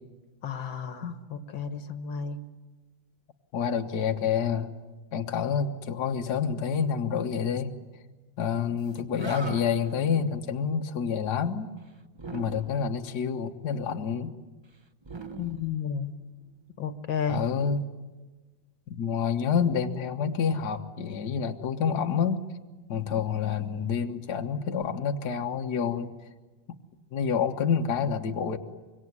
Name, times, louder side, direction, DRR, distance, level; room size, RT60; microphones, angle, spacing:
voice 1, 0.4-2.4 15.4-16.2 16.8-17.4, left 6 dB, 75° left, 9 dB, 2.1 m, -32 dB
voice 2, 3.5-4.8 5.1-7.7 8.4-11.7 12.3-14.3 17.3-17.8 18.9-22.4 22.9-26.1 27.1-28.6, left 6 dB, 55° left, 4 dB, 1.8 m, -28 dB
Animal, 8.8-8.9 9.1-10.0 12.1-13.0 15.0-16.3, right 3 dB, 40° right, 0.4 m, -41 dB
25.5 x 23.5 x 9.6 m, 1.2 s
omnidirectional pair, 2.2 m